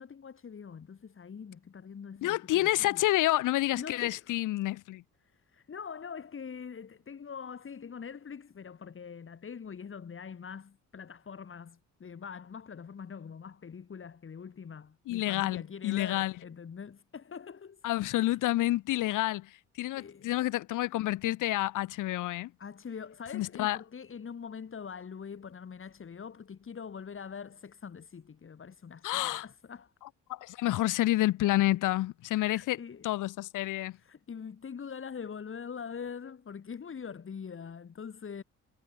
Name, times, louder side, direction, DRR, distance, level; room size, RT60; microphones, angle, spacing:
voice 1, 0.0-3.0 3.7-4.3 5.3-17.8 18.1-18.4 19.9-20.3 22.6-29.9 32.4-33.1 34.0-38.4, left 6 dB, 45° left, 5.1 m, -43 dB
voice 2, 2.2-5.0 15.1-16.3 17.8-19.5 19.8-22.5 23.3-23.8 29.0-29.4 30.3-32.8 33.0-34.0, left 16 dB, 90° left, 2.6 m, -29 dB
cardioid pair, 90°, 30 cm